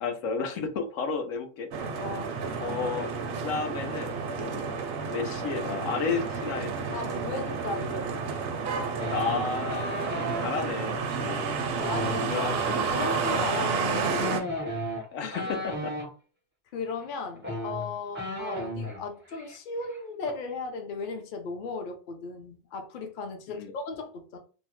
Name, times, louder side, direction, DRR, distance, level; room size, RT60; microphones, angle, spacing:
voice 1, 0.0-1.7 2.6-3.2 3.4-4.6 5.0-7.0 9.1-11.5 12.1-13.1 15.1-15.9 23.5-23.7, left 5 dB, 85° left, 1.0 m, -32 dB
sound 1, 1.7-14.4, right 5 dB, 65° right, 0.7 m, -31 dB
voice 2, 2.0-2.3 6.9-8.4 11.2-14.4 15.2-15.5 16.7-24.4, left 3 dB, 55° left, 0.6 m, -37 dB
sound 2, 9.0-10.5 11.7-16.1 17.0-17.1 17.4-19.0 19.3-19.6 19.8-20.3, equal, 15° right, 0.4 m, -34 dB
2.7 x 2.1 x 3.0 m
omnidirectional pair, 1.3 m